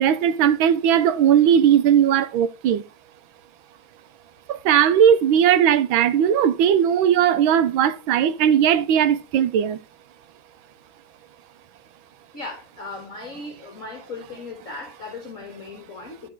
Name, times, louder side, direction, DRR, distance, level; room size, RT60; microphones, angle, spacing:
voice 1, 0.0-2.8 4.5-9.8, right 9 dB, 85° right, 1.5 m, -18 dB
voice 2, 12.3-16.3, left 3 dB, 40° left, 2.2 m, -37 dB
12.0 x 4.5 x 4.6 m
omnidirectional pair, 2.1 m